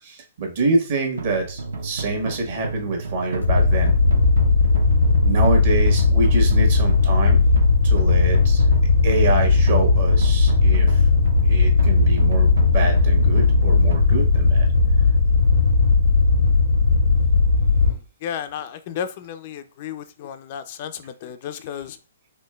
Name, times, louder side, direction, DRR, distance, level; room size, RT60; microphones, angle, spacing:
voice 1, 0.0-3.9 5.2-7.4 7.8-8.6 9.0-11.0 11.4-14.7, right 3 dB, 55° right, 1.2 m, -26 dB
sound 1, 1.2-14.0, right 3 dB, 70° right, 0.6 m, -32 dB
sound 2, 3.4-17.9, left 4 dB, 85° left, 0.6 m, -17 dB
voice 2, 17.8-22.0, left 8 dB, 45° left, 0.3 m, -33 dB
4.4 x 2.9 x 2.3 m
figure-of-eight pair, 125°, 0 cm